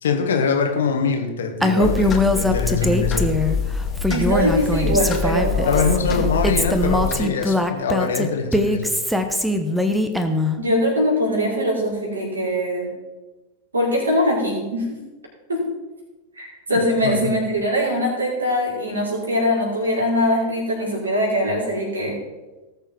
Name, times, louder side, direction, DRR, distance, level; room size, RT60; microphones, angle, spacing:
voice 1, 0.0-3.3 5.6-8.9 16.7-17.3, left 5 dB, 65° left, 5 dB, 1.6 m, -23 dB
Female speech woman speaking, 1.6-3.6 4.0-6.0 6.4-10.6, left 1 dB, 5° right, 1.1 m, -21 dB
sound 1, 1.8-7.1, left 6 dB, 25° left, 1.7 m, -25 dB
voice 2, 4.1-6.3 10.6-12.9 13.7-14.8 15.5-15.6 16.4-22.2, equal, 75° right, -2 dB, 4.7 m, -22 dB
18.5 x 6.9 x 4.6 m, 1.1 s
figure-of-eight pair, 90°, 0 cm